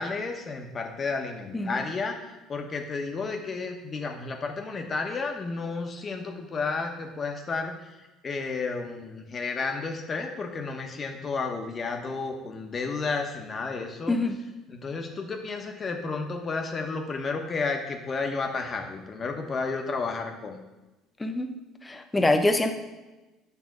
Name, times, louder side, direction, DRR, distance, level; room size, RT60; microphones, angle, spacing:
voice 1, 0.0-14.2 14.7-20.6, left 4 dB, 40° left, 3 dB, 1.2 m, -32 dB
voice 2, 21.2-21.5 21.9-22.7, left 2 dB, 15° left, 6 dB, 0.9 m, -24 dB
8.2 x 3.4 x 6.3 m, 1.1 s
hypercardioid pair, 65°, 0 cm